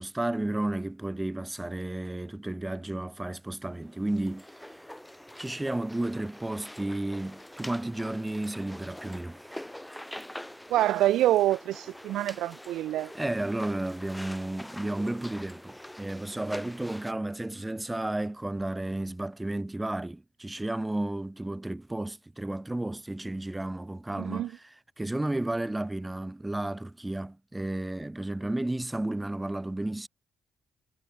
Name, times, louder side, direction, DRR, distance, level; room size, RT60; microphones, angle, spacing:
voice 1, 0.0-4.5 5.4-9.6 13.1-24.6 25.0-30.1, right 1 dB, 10° right, 1.7 m, -32 dB
sound 1, 3.7-17.1, left 1 dB, 5° left, 6.3 m, -45 dB
voice 2, 10.7-13.1 24.2-24.5, right 14 dB, 85° right, 0.3 m, -26 dB
cardioid pair, 90°, 0 cm